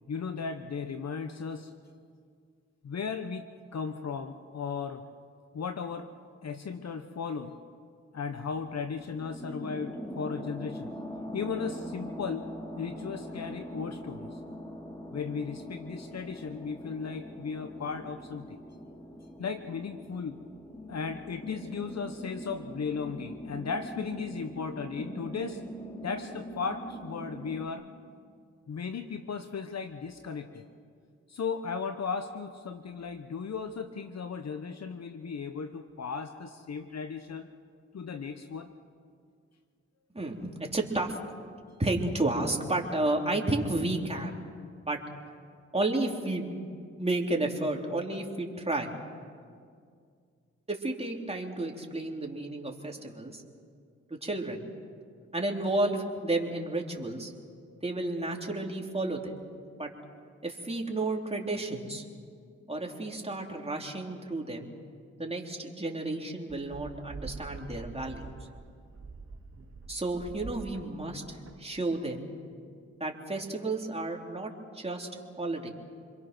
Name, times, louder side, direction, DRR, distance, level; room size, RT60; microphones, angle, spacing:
voice 1, 0.1-1.7 2.8-3.5 3.7-5.0 5.5-6.1 6.4-7.6 8.1-10.9 11.3-12.5 12.8-14.4 15.1-18.6 19.4-20.4 20.9-25.6 26.0-27.9 28.7-30.6 31.3-37.5 37.9-38.7, left 5 dB, 60° left, 8 dB, 1.1 m, -36 dB
sound 1, 8.3-27.7, equal, 15° left, 3.6 m, -42 dB
voice 2, 40.1-41.2 41.8-44.4 44.8-45.0 45.7-46.5 46.9-48.9 50.7-53.4 54.2-54.7 55.3-57.3 57.8-59.3 59.8-59.9 60.4-62.0 62.7-64.7 65.2-68.3 69.9-72.3 73.0-75.1 75.4-75.7, right 2 dB, 20° right, 0 dB, 3.6 m, -32 dB
sound 2, 66.5-72.0, right 4 dB, 50° right, 2.0 m, -46 dB
27.0 x 22.5 x 6.2 m, 2.2 s
supercardioid pair, 45°, 30 cm